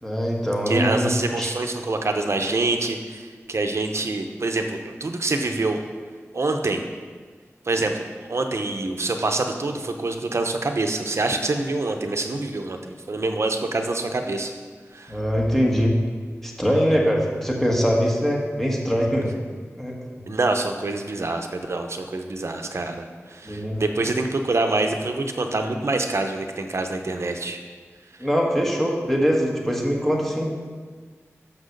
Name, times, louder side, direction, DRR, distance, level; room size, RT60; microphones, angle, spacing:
voice 1, 0.0-1.1 1.4-1.5 15.1-15.9 16.4-19.3 19.8-20.2 23.4-23.8 28.2-30.5, equal, 5° left, -2 dB, 1.5 m, -22 dB
voice 2, 0.7-5.8 6.3-6.8 7.6-12.8 13.1-14.5 14.9-15.2 20.3-27.6, right 2 dB, 60° right, 5 dB, 0.7 m, -26 dB
6.1 x 6.0 x 6.6 m, 1.5 s
wide cardioid pair, 70°, 5 cm